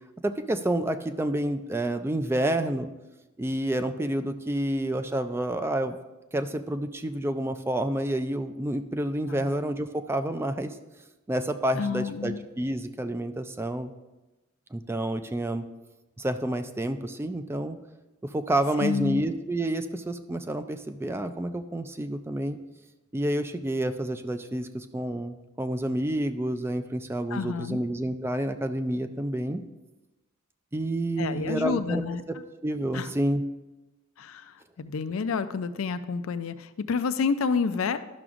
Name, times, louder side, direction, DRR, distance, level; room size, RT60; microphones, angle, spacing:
voice 1, 0.2-2.9 3.4-6.0 6.3-10.8 11.3-13.9 14.7-15.7 16.2-17.8 18.3-22.6 23.1-29.6 30.7-32.0 32.6-33.4, right 1 dB, 10° right, 9 dB, 0.3 m, -29 dB
voice 2, 11.7-12.5 18.8-19.2 27.3-27.8 31.2-32.2 32.9-33.1 34.2-38.0, left 5 dB, 70° left, 12 dB, 0.4 m, -29 dB
12.0 x 5.9 x 2.5 m, 1.1 s
head